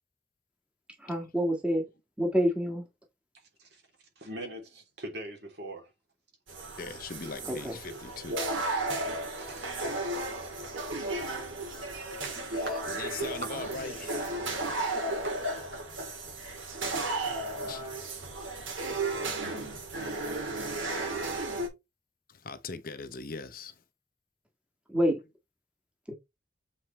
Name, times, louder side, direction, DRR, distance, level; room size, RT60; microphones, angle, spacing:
voice 1, 1.0-1.8 2.2-2.8 7.4-7.8 24.9-25.2 26.1-26.2, equal, 5° right, 1.6 m, -27 dB
voice 2, 4.2-5.9 6.6-6.7 9.4-9.9 10.4-10.5 11.5-11.6 12.2-12.4 12.6-12.8 13.4-13.5 14.9-15.7, right 1 dB, 55° right, 2.9 m, -43 dB
sound 1, 6.5-21.7, right 2 dB, 80° right, 2.8 m, -34 dB
voice 3, 6.8-8.4 12.9-14.4 17.7-17.9 22.4-23.7, left 4 dB, 45° left, 0.8 m, -40 dB
7.6 x 4.4 x 3.2 m
head